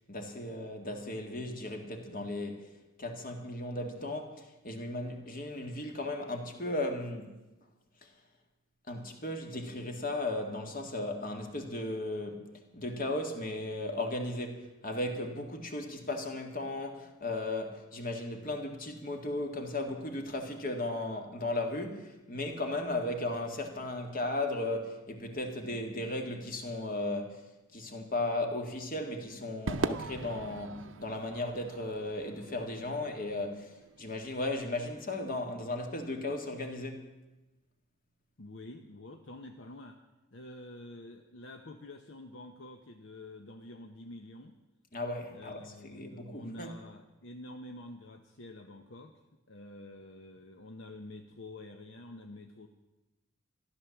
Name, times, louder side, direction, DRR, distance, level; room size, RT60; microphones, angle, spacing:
voice 1, 0.1-7.4 8.0-8.1 8.9-37.0 44.9-46.7, left 2 dB, 45° left, 2.0 m, -36 dB
Crowd / Fireworks, 29.7-34.2, right 3 dB, 70° right, 0.7 m, -39 dB
voice 2, 38.4-40.0 40.3-44.6 45.3-49.1 49.5-52.7, left 1 dB, 65° left, 0.9 m, -48 dB
14.5 x 11.5 x 7.2 m
head